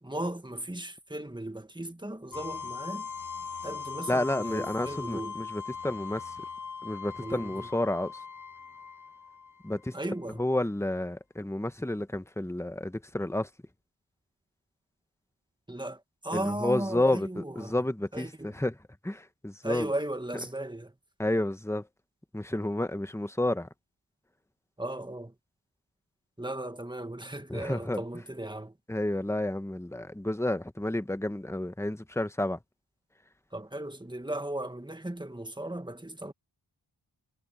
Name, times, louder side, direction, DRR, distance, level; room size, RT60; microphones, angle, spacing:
voice 1, 0.0-3.1 3.6-5.4 7.2-7.7 9.9-10.4 15.7-17.7 18.1-18.6 19.6-20.9 24.8-25.3 26.4-28.8 33.5-36.3, right 1 dB, 10° right, 1.8 m, -36 dB
sound 1, 2.3-10.1, left 6 dB, 40° left, 0.9 m, -40 dB
voice 2, 4.1-6.4 6.8-8.2 9.6-9.9 10.4-13.5 16.3-18.7 19.0-19.9 21.2-21.9 22.3-23.7 27.5-28.0 28.9-32.6, left 1 dB, 5° left, 1.2 m, -30 dB
wide cardioid pair, 55°, 46 cm